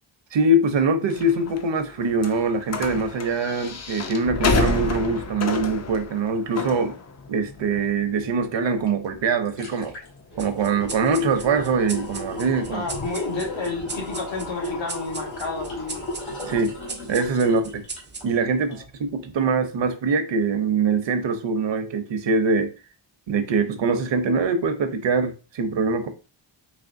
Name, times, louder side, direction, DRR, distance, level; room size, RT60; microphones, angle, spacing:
voice 1, 0.3-6.9 7.3-10.0 10.4-12.8 16.5-16.8 17.1-17.8 18.2-22.7 23.3-26.1, right 3 dB, 70° right, 0.7 m, -23 dB
sound 1, 1.1-13.1, left 3 dB, 35° left, 0.4 m, -31 dB
sound 2, 8.9-9.0 9.3-18.3 18.7-18.8, left 2 dB, 90° left, 1.4 m, -35 dB
sound 3, 10.4-19.3, right 3 dB, 25° right, 0.4 m, -40 dB
voice 2, 12.7-16.0 17.4-17.6 18.7-18.8, left 4 dB, 75° left, 1.4 m, -31 dB
4.2 x 3.0 x 2.6 m
wide cardioid pair, 170°, 46 cm